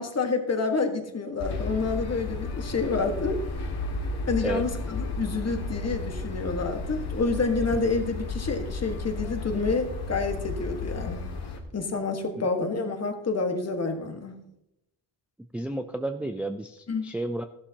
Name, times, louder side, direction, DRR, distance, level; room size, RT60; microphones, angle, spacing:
voice 1, 0.0-3.4 4.3-11.2 11.7-14.4 16.9-17.1, left 4 dB, 35° left, 5 dB, 1.6 m, -28 dB
sound 1, 1.4-11.6, left 3 dB, 65° left, 2.1 m, -33 dB
voice 2, 15.5-17.4, right 2 dB, 5° right, 7 dB, 0.4 m, -32 dB
14.0 x 11.5 x 2.9 m, 0.86 s
cardioid pair, 110°, 43 cm